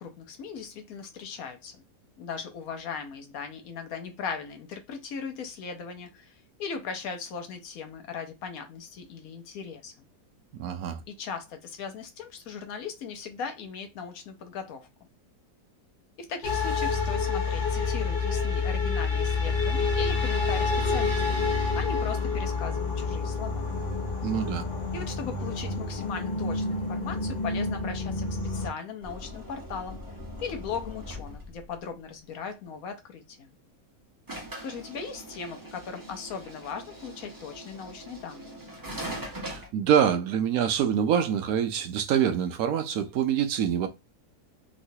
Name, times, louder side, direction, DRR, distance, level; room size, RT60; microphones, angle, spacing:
voice 1, 0.0-1.8 2.2-10.1 11.1-14.9 16.2-21.2 21.7-23.7 24.9-30.0 30.4-33.5 34.6-38.6, left 6 dB, 65° left, 1.0 m, -38 dB
voice 2, 10.6-11.0 24.2-24.6 39.4-43.9, right 9 dB, 70° right, 0.9 m, -25 dB
sound 1, 16.4-28.7, left 4 dB, 40° left, 0.7 m, -28 dB
sound 2, 29.0-31.7 34.3-39.7, equal, 20° right, 0.6 m, -41 dB
3.1 x 2.9 x 2.7 m
omnidirectional pair, 1.8 m